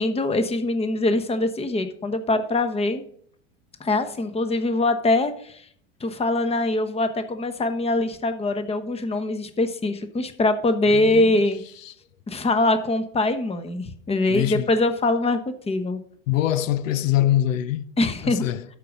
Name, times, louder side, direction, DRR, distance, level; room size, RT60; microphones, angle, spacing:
voice 1, 0.0-3.0 3.8-5.6 6.0-11.6 12.3-16.0 18.0-18.4, left 2 dB, 15° left, 1.1 m, -23 dB
voice 2, 10.9-11.4 11.8-11.9 14.3-14.7 16.3-17.9 18.2-18.7, left 12 dB, 80° left, 0.7 m, -24 dB
12.5 x 4.9 x 5.2 m
hypercardioid pair, 100°, 38 cm